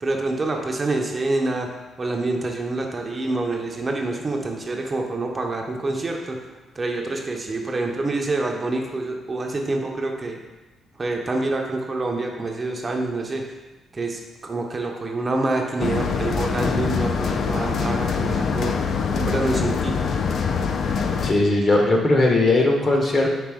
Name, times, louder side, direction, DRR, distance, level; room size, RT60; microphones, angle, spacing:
voice 1, 0.0-1.7 2.0-6.4 6.8-10.4 11.0-13.5 13.9-18.8 19.2-20.0, right 2 dB, 30° right, 2 dB, 0.5 m, -26 dB
sound 1, 15.8-21.3, left 5 dB, 55° left, 0.3 m, -24 dB
voice 2, 21.2-23.3, left 2 dB, 40° left, 0 dB, 0.8 m, -18 dB
5.0 x 2.7 x 3.4 m, 1.1 s
cardioid pair, 90°, 0 cm